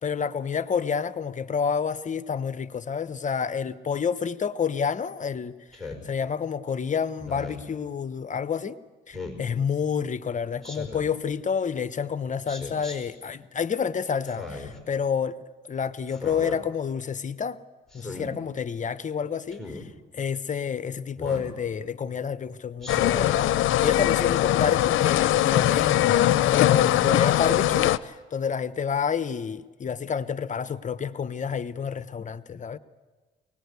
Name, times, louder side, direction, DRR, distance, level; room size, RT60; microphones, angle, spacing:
voice 1, 0.0-5.6 6.0-8.8 9.1-15.4 15.7-17.6 17.9-19.6 20.1-32.8, left 6 dB, 40° left, 0.9 m, -29 dB
Speech synthesizer, 5.7-6.1 7.2-7.7 9.1-9.4 10.6-11.1 12.5-13.0 14.2-14.8 16.1-16.6 17.9-18.3 19.5-19.8 21.2-21.6 22.8-23.3, left 3 dB, ahead, 5.0 m, -37 dB
sound 1, 22.9-28.0, left 13 dB, 80° left, 0.6 m, -21 dB
23.5 x 19.5 x 8.2 m
cardioid pair, 90°, 20 cm